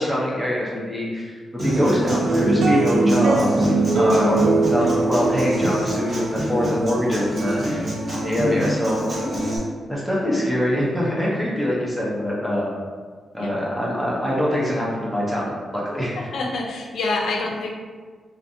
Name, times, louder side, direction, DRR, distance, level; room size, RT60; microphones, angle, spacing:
voice 1, 0.0-3.7 3.9-9.0 9.4-9.5 9.9-12.7 13.3-16.1, left 1 dB, ahead, -6 dB, 0.6 m, -24 dB
Human voice / Acoustic guitar, 1.6-9.6, right 1 dB, 35° right, 0.8 m, -27 dB
sound 1, 1.7-8.4, right 2 dB, 75° right, 0.3 m, -22 dB
voice 2, 16.2-17.7, left 3 dB, 90° left, 0 dB, 0.4 m, -26 dB
2.5 x 2.4 x 2.5 m, 1.5 s
wide cardioid pair, 160°, 0 cm